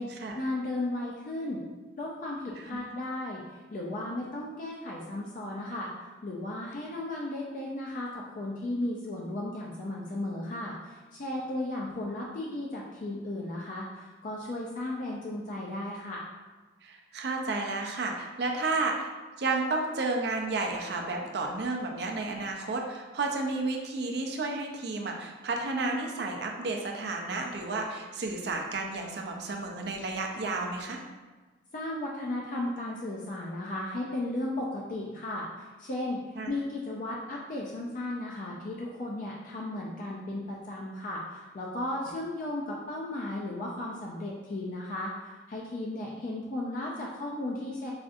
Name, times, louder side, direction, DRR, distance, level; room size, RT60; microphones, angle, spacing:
voice 1, 0.3-1.6 2.0-5.9 6.2-16.2 31.7-36.2 36.5-47.9, left 1 dB, 45° left, -3 dB, 0.4 m, -35 dB
voice 2, 16.8-19.1 19.4-31.0 36.4-36.5, right 3 dB, 60° right, 1 dB, 0.5 m, -32 dB
4.9 x 2.5 x 2.4 m, 1.3 s
head